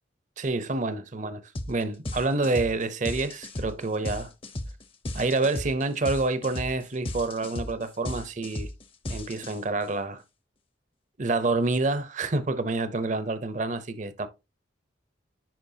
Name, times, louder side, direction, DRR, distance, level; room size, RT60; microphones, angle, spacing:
voice 1, 0.4-1.4 1.7-4.3 5.1-8.7 9.1-10.2 11.2-14.3, right 3 dB, 40° right, 0.7 m, -28 dB
sound 1, 1.5-1.7 2.0-9.8, left 1 dB, 30° left, 0.7 m, -35 dB
10.5 x 4.4 x 2.7 m
head